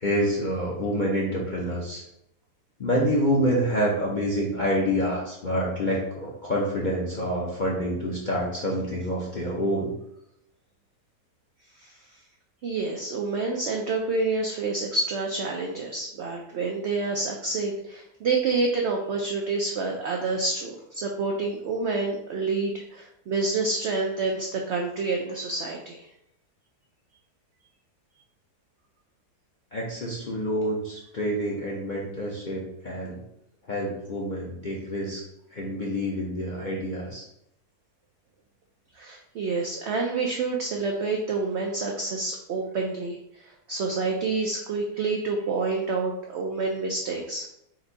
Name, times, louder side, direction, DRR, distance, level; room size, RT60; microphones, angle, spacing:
voice 1, 0.0-2.0 2.8-9.9 29.7-33.2 33.7-35.2 35.5-37.2, equal, 50° left, -4 dB, 0.6 m, -27 dB
voice 2, 12.6-26.1 39.0-43.2 43.4-47.5, right 3 dB, 85° right, 1 dB, 0.6 m, -28 dB
4.2 x 2.6 x 3.9 m, 0.79 s
omnidirectional pair, 1.7 m